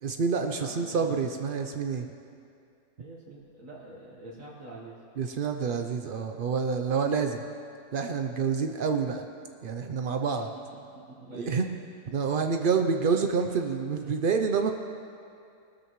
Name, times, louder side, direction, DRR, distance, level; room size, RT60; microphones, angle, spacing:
voice 1, 0.0-2.1 5.2-7.4 7.9-9.2 9.6-10.5 11.3-11.7 12.1-14.7, right 5 dB, 90° right, 5 dB, 0.4 m, -28 dB
voice 2, 0.6-1.1 3.0-4.9 10.3-10.4 11.1-11.6, right 1 dB, 55° right, -4 dB, 1.7 m, -45 dB
20.5 x 13.0 x 3.1 m, 2.5 s
omnidirectional pair, 1.7 m